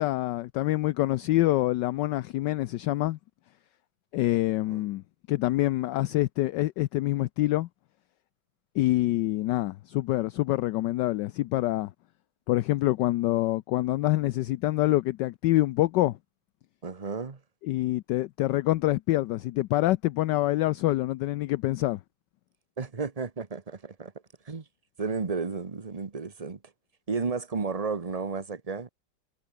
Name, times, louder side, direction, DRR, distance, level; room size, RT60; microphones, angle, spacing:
voice 1, 0.0-3.2 4.1-7.7 8.7-11.9 12.5-16.2 17.6-22.0, left 16 dB, 75° left, 1.1 m, -26 dB
voice 2, 16.8-17.4 22.8-24.1 24.4-24.6 25.0-26.6 27.1-28.9, right 4 dB, 25° right, 1.0 m, -32 dB
omnidirectional pair, 2.1 m